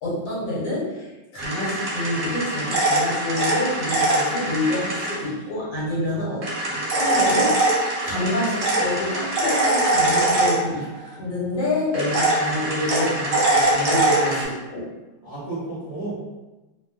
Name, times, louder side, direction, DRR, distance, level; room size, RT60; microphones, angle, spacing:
voice 1, 0.0-6.5 6.7-10.9 11.2-14.9, left 1 dB, 70° left, -7 dB, 1.7 m, -27 dB
sound 1, 1.4-5.2 6.4-11.1 11.9-14.5, right 1 dB, 65° right, 0.8 m, -22 dB
voice 2, 6.1-6.7 15.2-16.1, right 2 dB, 25° right, -11 dB, 0.7 m, -34 dB
3.4 x 2.1 x 2.4 m, 1.1 s
omnidirectional pair, 2.2 m